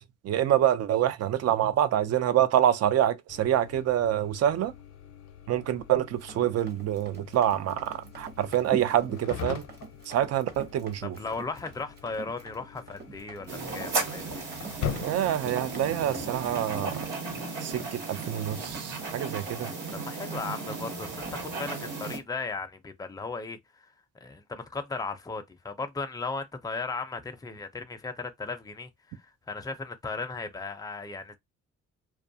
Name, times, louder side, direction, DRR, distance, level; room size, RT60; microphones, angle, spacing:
voice 1, 0.2-4.7 5.5-9.7 10.1-11.2 15.0-16.9 17.6-19.7, right 11 dB, 55° right, 0.5 m, -26 dB
sound 1, 3.3-16.5, left 9 dB, 65° left, 0.6 m, -42 dB
Run, 6.2-22.3, right 4 dB, 35° right, 0.9 m, -46 dB
voice 2, 11.2-14.4 20.0-23.9 24.2-31.3, left 4 dB, 10° left, 0.5 m, -36 dB
sound 2, 13.5-22.2, right 3 dB, 75° right, 1.2 m, -35 dB
2.3 x 2.3 x 2.6 m
cardioid pair, 90°, 30 cm